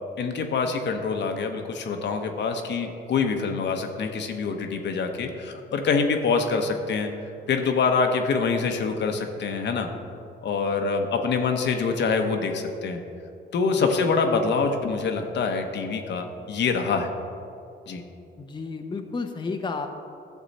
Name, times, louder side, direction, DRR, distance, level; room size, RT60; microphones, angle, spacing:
voice 1, 0.2-7.1 7.5-9.9 10.4-13.0 13.5-17.1 17.9-18.0, left 4 dB, 65° left, 4 dB, 1.0 m, -25 dB
voice 2, 18.4-19.9, left 4 dB, 25° left, 4 dB, 0.7 m, -32 dB
12.0 x 7.2 x 4.2 m, 2.6 s
cardioid pair, 90°, 20 cm